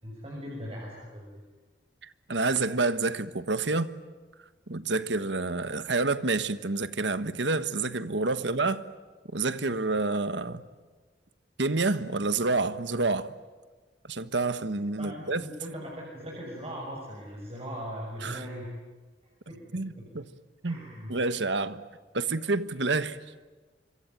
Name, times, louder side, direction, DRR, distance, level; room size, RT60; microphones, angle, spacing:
voice 1, 0.0-1.4 15.0-18.7 19.5-19.6 20.0-20.1 20.7-21.1, equal, 35° right, 6.8 m, -39 dB
voice 2, 2.3-3.9 4.7-8.8 9.3-10.6 11.6-13.3 14.0-15.5 18.2-18.4 19.7-20.3 20.6-20.8 21.1-21.8 22.1-23.2, right 3 dB, 85° right, 1.4 m, -28 dB
26.0 x 24.5 x 9.3 m
head